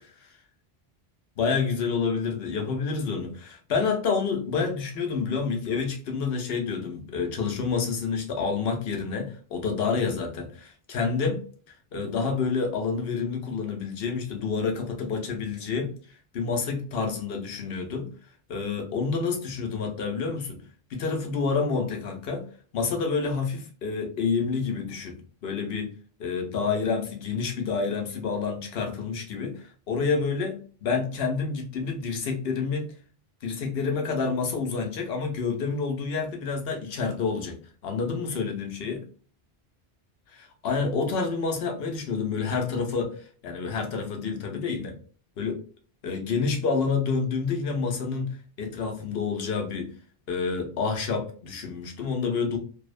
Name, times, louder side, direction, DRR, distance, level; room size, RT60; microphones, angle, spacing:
voice 1, 1.4-15.9 16.3-18.1 18.5-20.6 20.9-22.5 22.7-25.9 26.2-32.9 33.4-37.6 37.8-39.0 40.6-45.0 45.4-45.6 46.0-48.3 48.6-49.9 50.3-52.6, left 5 dB, 70° left, 4 dB, 0.9 m, -28 dB
2.7 x 2.0 x 2.4 m, 0.41 s
omnidirectional pair, 1.1 m